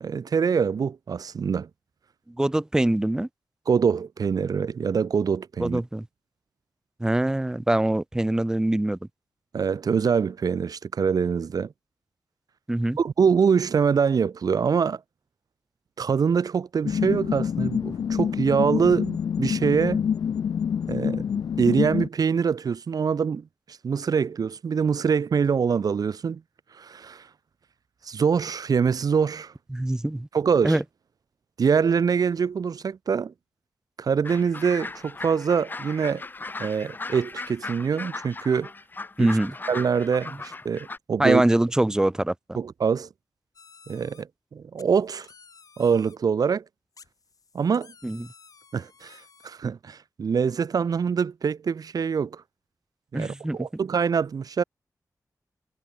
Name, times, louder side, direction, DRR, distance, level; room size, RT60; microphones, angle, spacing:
voice 1, 0.0-1.7 3.7-5.8 9.5-11.7 13.0-15.0 16.0-20.0 20.9-21.2 21.6-23.4 23.8-26.4 26.8-27.3 28.1-29.5 30.3-30.8 31.6-33.3 34.0-36.2 36.6-38.7 39.2-39.3 39.7-41.4 42.6-43.1 43.9-44.3 44.5-45.3 45.8-46.6 47.5-47.9 48.7-49.2 49.4-52.4 53.1-54.6, right 6 dB, 65° right, 0.9 m, -24 dB
voice 2, 2.3-3.3 5.6-6.1 7.0-9.0 12.7-13.0 29.7-30.3 30.6-30.8 39.2-39.5 41.2-42.3 48.0-48.3 53.1-53.6, right 1 dB, 10° right, 0.3 m, -23 dB
sound 1, 16.8-22.1, left 7 dB, 80° left, 0.4 m, -26 dB
sound 2, 34.2-41.0, left 3 dB, 30° left, 0.8 m, -38 dB
sound 3, 43.5-44.2 44.8-46.2 46.9-49.5, left 5 dB, 60° left, 2.3 m, -53 dB
wide cardioid pair, 125°, 7 cm